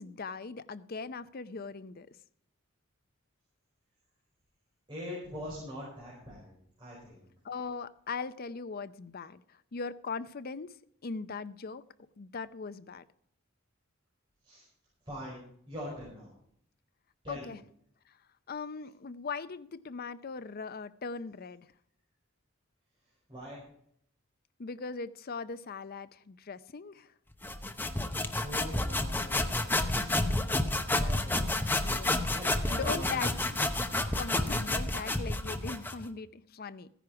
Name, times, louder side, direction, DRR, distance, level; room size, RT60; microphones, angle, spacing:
voice 1, 0.0-2.1 7.4-10.8 11.0-11.8 12.2-13.0 17.3-17.6 18.5-21.7 24.6-27.1 31.3-32.3 32.7-33.4 34.1-36.9, left 4 dB, 45° left, 13 dB, 0.6 m, -40 dB
voice 2, 4.9-6.5 6.8-7.2 14.4-14.7 15.0-16.3 17.2-17.5 23.3-23.6 28.4-30.5 30.9-31.6 32.2-33.3 34.8-35.1, equal, 25° right, -7 dB, 5.1 m, -43 dB
sound 1, 27.4-36.0, left 2 dB, 10° left, 0.8 m, -30 dB
14.5 x 10.0 x 4.7 m, 0.68 s
head